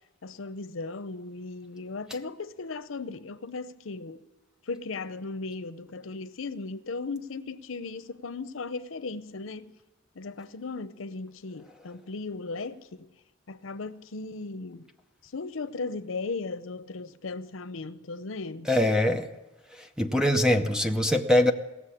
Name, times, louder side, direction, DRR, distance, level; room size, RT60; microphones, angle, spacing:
voice 1, 0.2-4.2 4.7-9.7 10.2-13.1 13.5-14.9 15.2-18.7, left 3 dB, 90° left, 0.7 m, -37 dB
voice 2, 18.7-19.3 20.0-21.5, left 1 dB, 5° right, 0.7 m, -22 dB
18.0 x 7.2 x 9.9 m
head